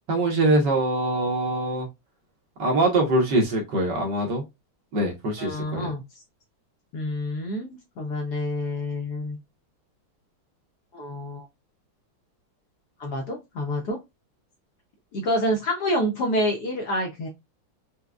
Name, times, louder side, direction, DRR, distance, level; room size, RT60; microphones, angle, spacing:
voice 1, 0.1-1.9 2.6-4.4 4.9-5.9, right 2 dB, 60° right, 1.5 m, -23 dB
voice 2, 5.4-6.0 6.9-9.4 10.9-11.5 13.0-14.0 15.1-17.3, left 1 dB, 65° left, 1.1 m, -28 dB
4.8 x 2.3 x 2.2 m
omnidirectional pair, 2.3 m